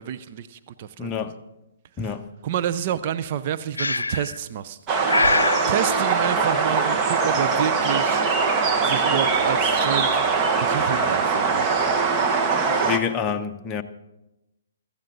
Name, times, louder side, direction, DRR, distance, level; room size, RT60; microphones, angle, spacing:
voice 1, 0.0-1.3 2.0-2.2 2.4-4.8 5.7-8.2 8.8-10.1 10.5-11.7, right 10 dB, 45° right, 0.6 m, -29 dB
voice 2, 1.0-1.3 2.0-2.3 12.8-13.8, left 7 dB, 20° left, 0.8 m, -27 dB
Breathing, 3.8-4.4 5.1-5.7, left 3 dB, 90° left, 0.3 m, -22 dB
sound 1, 4.9-13.0, right 4 dB, 25° right, 1.2 m, -22 dB
16.5 x 13.0 x 4.0 m
hypercardioid pair, 135°, 0 cm